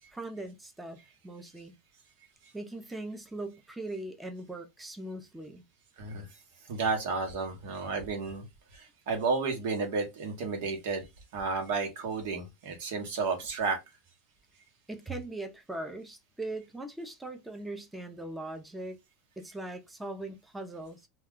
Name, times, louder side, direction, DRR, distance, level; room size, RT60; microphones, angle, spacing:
voice 1, 0.1-1.0 1.2-1.7 2.5-5.6 14.9-19.0 19.4-21.0, right 2 dB, 5° right, 0.6 m, -40 dB
voice 2, 6.6-8.4 8.7-11.1 11.3-13.8, right 4 dB, 75° right, 1.1 m, -32 dB
2.4 x 2.2 x 3.7 m
supercardioid pair, 120°, 0 cm